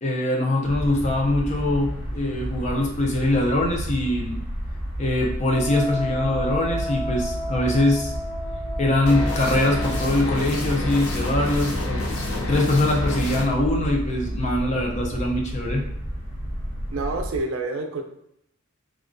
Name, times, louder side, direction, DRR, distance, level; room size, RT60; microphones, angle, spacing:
voice 1, 0.0-4.4 5.0-8.1 8.8-12.0 12.3-15.8, left 1 dB, 35° left, 0 dB, 0.5 m, -23 dB
sound 1, 0.6-17.4, equal, 60° left, 1.2 m, -31 dB
Wind instrument woodwind instrument, 5.5-10.2, equal, 5° left, 1.2 m, -32 dB
sound 2, 9.1-13.4, left 2 dB, 85° left, 0.6 m, -29 dB
voice 2, 16.9-18.0, right 3 dB, 70° right, 5 dB, 0.4 m, -28 dB
2.3 x 2.1 x 2.5 m, 0.74 s
head